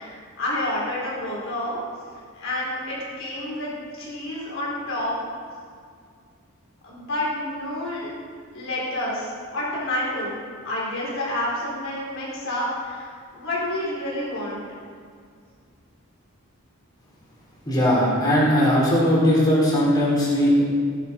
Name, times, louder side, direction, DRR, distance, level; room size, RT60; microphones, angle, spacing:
voice 1, 0.0-1.8 2.3-5.1 6.8-8.1 8.5-10.4 10.6-14.6, left 1 dB, 65° left, -5 dB, 4.7 m, -29 dB
voice 2, 17.7-20.6, equal, 20° left, -7 dB, 4.1 m, -19 dB
16.5 x 10.5 x 5.5 m, 2.1 s
head